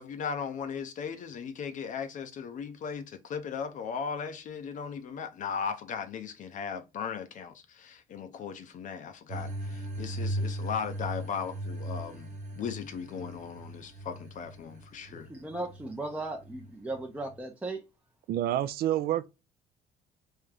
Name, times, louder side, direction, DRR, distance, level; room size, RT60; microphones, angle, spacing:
voice 1, 0.0-12.3 12.6-15.3, left 6 dB, 50° left, 0.5 m, -37 dB
sound 1, 9.3-17.4, right 1 dB, 45° right, 0.9 m, -38 dB
voice 2, 15.1-17.8, right 2 dB, 10° right, 0.6 m, -37 dB
voice 3, 18.3-19.3, right 12 dB, 65° right, 0.4 m, -28 dB
3.5 x 2.7 x 3.2 m
cardioid pair, 110°, 17 cm